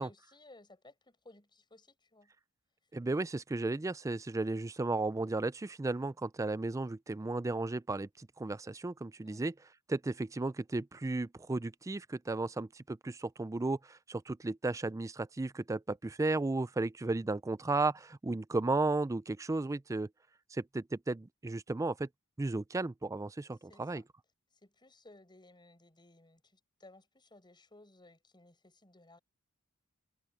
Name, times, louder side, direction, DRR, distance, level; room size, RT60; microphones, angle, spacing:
voice 1, 0.0-2.3 9.2-9.4 23.6-24.0 24.6-29.2, left 2 dB, 20° left, 7.4 m, -59 dB
voice 2, 2.9-9.5 9.9-20.1 20.5-22.1 22.4-24.0, right 2 dB, 15° right, 0.3 m, -34 dB
head